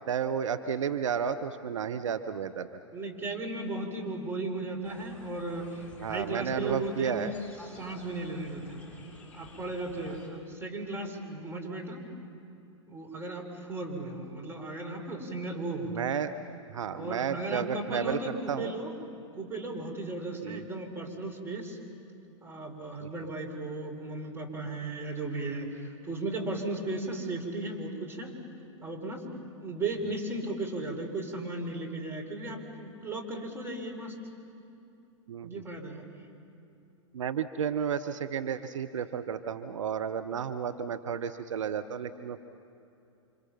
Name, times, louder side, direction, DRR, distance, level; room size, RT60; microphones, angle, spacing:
voice 1, 0.1-2.8 6.0-7.3 15.8-16.3 16.7-18.7 20.4-20.6 35.3-35.6 37.1-42.4, right 7 dB, 75° right, 10 dB, 0.9 m, -32 dB
voice 2, 2.9-7.3 7.6-8.8 9.3-12.0 12.9-16.1 16.9-18.9 19.3-21.8 22.4-28.3 28.8-34.2 35.4-36.0, right 2 dB, 15° right, 1 dB, 4.2 m, -36 dB
sound 1, 4.8-10.3, left 3 dB, 5° left, 6.8 m, -52 dB
29.0 x 26.0 x 5.8 m, 2.8 s
hypercardioid pair, 100°, 16 cm